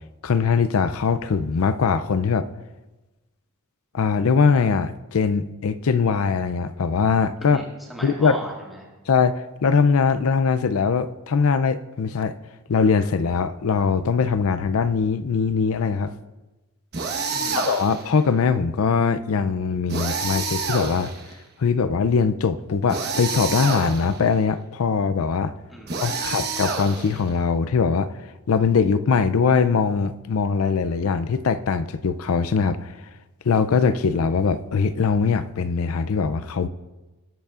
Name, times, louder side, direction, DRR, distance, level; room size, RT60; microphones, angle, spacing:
voice 1, 0.2-2.5 3.9-7.6 8.0-8.4 9.1-12.3 12.7-16.1 17.5-21.1 21.6-25.5 26.0-28.1 28.5-32.9 33.4-36.7, left 5 dB, 70° left, 12 dB, 0.5 m, -21 dB
voice 2, 7.4-8.9 17.3-17.6 25.7-26.4, right 1 dB, ahead, -4 dB, 1.9 m, -38 dB
sound 1, 16.9-18.1 19.9-21.3 22.9-24.2 25.9-27.3, right 4 dB, 50° right, 1.1 m, -28 dB
18.5 x 8.0 x 2.5 m, 1.1 s
head